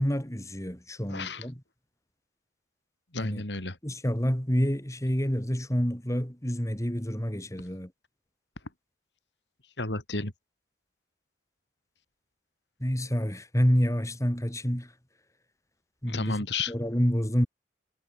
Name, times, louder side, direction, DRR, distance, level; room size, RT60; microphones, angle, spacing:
voice 1, 0.0-1.6 3.2-3.4 3.8-7.9 12.8-14.9 16.0-16.4 16.7-17.5, equal, 20° left, 3.6 m, -28 dB
voice 2, 1.1-1.5 3.1-3.8 9.8-10.3 16.1-16.7, left 3 dB, 75° left, 3.8 m, -32 dB
head